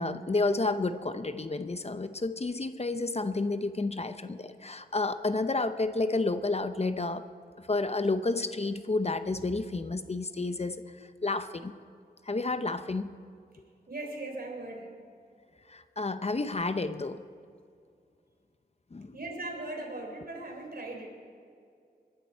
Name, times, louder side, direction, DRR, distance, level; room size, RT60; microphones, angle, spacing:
voice 1, 0.0-7.2 7.6-11.8 12.3-13.1 15.7-17.2 18.9-19.2, left 3 dB, 40° left, 10 dB, 0.7 m, -30 dB
voice 2, 13.9-14.9 19.1-21.1, right 2 dB, 65° right, 1 dB, 3.6 m, -38 dB
21.5 x 12.0 x 4.6 m, 2.4 s
wide cardioid pair, 60°, 17 cm